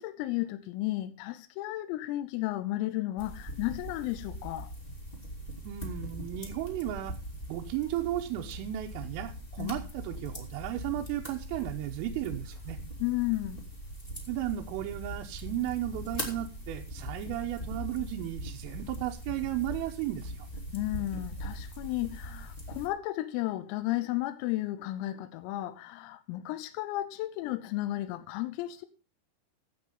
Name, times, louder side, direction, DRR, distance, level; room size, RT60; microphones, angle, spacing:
voice 1, 0.0-4.7 9.6-9.8 13.0-13.7 20.7-28.9, left 16 dB, 85° left, 3.5 m, -33 dB
sound 1, 3.2-22.9, equal, 30° left, 1.0 m, -41 dB
voice 2, 5.6-7.2 7.5-12.8 14.3-20.5, right 13 dB, 85° right, 3.3 m, -34 dB
15.0 x 8.2 x 5.3 m
omnidirectional pair, 5.9 m